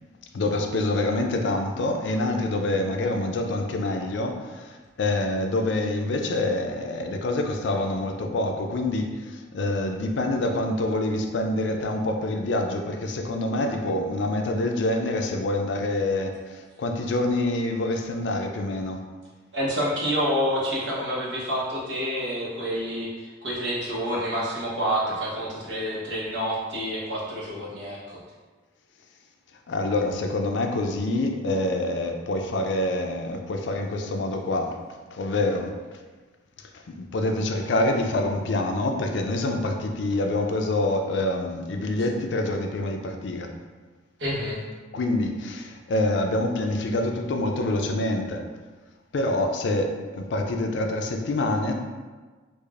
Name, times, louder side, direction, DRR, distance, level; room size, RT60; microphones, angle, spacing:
voice 1, 0.3-19.0 29.7-34.8 35.1-35.7 36.7-43.5 44.9-48.5 49.1-51.7, left 2 dB, 70° left, 4 dB, 0.4 m, -26 dB
voice 2, 19.5-28.2 44.2-44.6, equal, 70° right, -6 dB, 1.0 m, -28 dB
4.8 x 2.5 x 2.4 m, 1.3 s
head